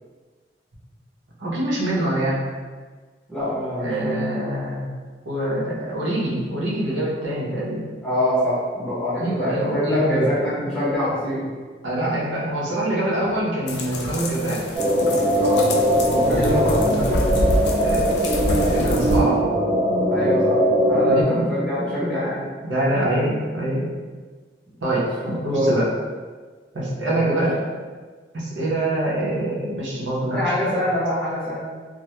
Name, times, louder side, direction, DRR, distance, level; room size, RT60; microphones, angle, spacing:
voice 1, 1.4-2.4 3.8-4.9 5.3-7.9 9.1-10.3 11.8-14.6 16.1-17.1 17.8-19.5 21.1-21.4 22.6-23.8 24.8-25.9 26.7-27.7 28.3-30.8, right 1 dB, 85° right, -6 dB, 0.6 m, -25 dB
voice 2, 3.3-4.3 8.0-11.5 13.1-13.3 15.4-15.7 16.2-16.8 20.1-20.6 20.9-22.5 24.9-25.0 25.5-25.7 27.1-27.3 30.3-31.6, equal, 5° left, -11 dB, 0.7 m, -25 dB
sound 1, 13.7-19.2, left 1 dB, 65° left, 0.3 m, -26 dB
sound 2, 14.7-21.2, equal, 25° right, 0.4 m, -20 dB
2.1 x 2.0 x 2.8 m, 1.4 s
head